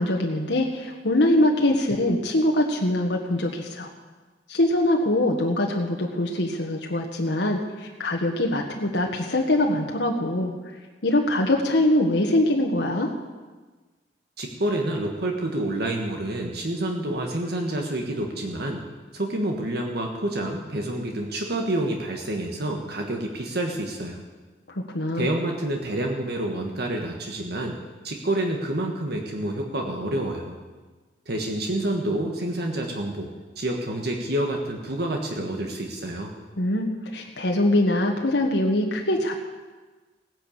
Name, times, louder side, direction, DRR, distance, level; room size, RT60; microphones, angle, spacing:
voice 1, 0.0-3.9 4.5-10.5 11.0-13.1 24.7-25.3 36.6-39.3, left 1 dB, 80° left, 1 dB, 1.4 m, -23 dB
voice 2, 14.4-18.8 19.1-24.2 25.1-27.8 28.0-30.6 31.3-36.3, right 1 dB, 65° right, 2 dB, 1.5 m, -28 dB
17.5 x 10.5 x 7.2 m, 1.3 s
head